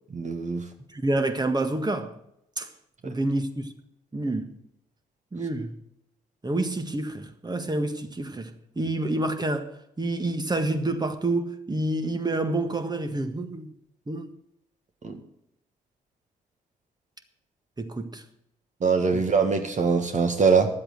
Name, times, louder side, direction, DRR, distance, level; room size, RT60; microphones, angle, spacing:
voice 1, 0.1-0.6 15.0-15.1 18.8-20.7, right 5 dB, 40° right, 1.7 m, -22 dB
voice 2, 0.9-2.1 2.6-2.7 3.0-3.7 4.1-4.5 5.3-5.8 6.4-13.7 14.1-14.3 17.8-18.2 19.1-19.2, right 2 dB, 20° right, 1.7 m, -28 dB
11.0 x 7.9 x 7.7 m
hypercardioid pair, 45°, 18 cm